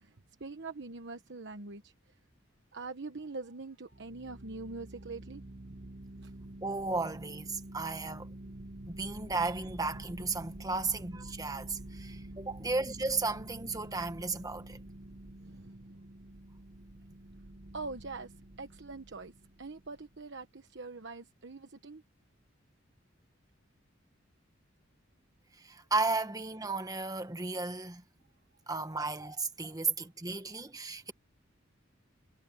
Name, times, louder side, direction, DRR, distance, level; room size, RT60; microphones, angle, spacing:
voice 1, 0.0-2.2 2.7-5.9 6.2-6.3 9.0-9.1 15.4-16.0 17.7-22.0, right 3 dB, 60° right, 1.2 m, -44 dB
sound 1, 3.9-20.2, right 1 dB, 40° right, 0.9 m, -48 dB
voice 2, 6.6-8.3 8.9-14.8 25.6-28.0 28.7-31.1, right 3 dB, 20° right, 1.5 m, -34 dB
head